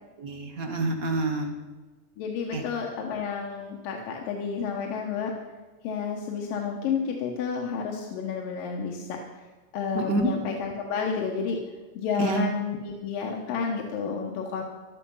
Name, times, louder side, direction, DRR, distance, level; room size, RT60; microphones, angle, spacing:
voice 1, 0.2-1.5 2.5-2.6 9.9-10.3 12.2-12.4, right 2 dB, 40° right, 3 dB, 1.3 m, -27 dB
voice 2, 2.2-5.3 5.8-9.5 9.7-11.6 12.0-14.6, left 6 dB, 80° left, 1 dB, 2.9 m, -31 dB
15.0 x 12.5 x 5.5 m, 1.3 s
omnidirectional pair, 3.9 m